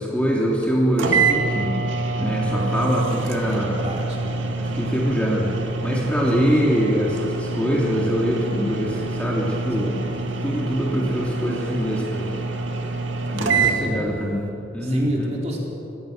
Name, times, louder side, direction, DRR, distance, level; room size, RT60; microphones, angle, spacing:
voice 1, 0.0-1.8 2.2-3.8 4.6-5.6 5.8-10.1 10.4-12.4 13.3-15.3, equal, 5° left, -4 dB, 3.0 m, -24 dB
sound 1, 0.6-0.7 1.0-13.8, right 4 dB, 85° right, 2.1 m, -26 dB
voice 2, 3.4-4.5 6.3-6.7 9.8-10.0 10.9-11.2 13.4-14.2 14.8-15.6, equal, 35° right, -2 dB, 4.1 m, -30 dB
25.5 x 18.0 x 6.7 m, 2.9 s
head